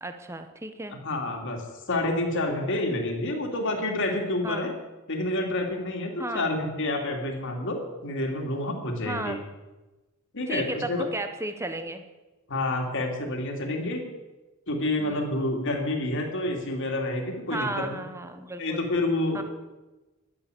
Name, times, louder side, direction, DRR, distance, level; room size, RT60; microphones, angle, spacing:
voice 1, 0.0-1.0 4.4-4.7 6.2-6.5 9.0-9.4 10.5-12.0 15.0-15.3 17.5-18.9 19.3-19.4, right 2 dB, 15° right, 8 dB, 1.0 m, -34 dB
voice 2, 0.9-4.7 5.1-9.4 10.3-11.1 12.5-14.0 14.7-18.0 18.6-19.4, left 2 dB, 60° left, 2 dB, 2.7 m, -28 dB
12.0 x 9.9 x 8.3 m, 1.1 s
head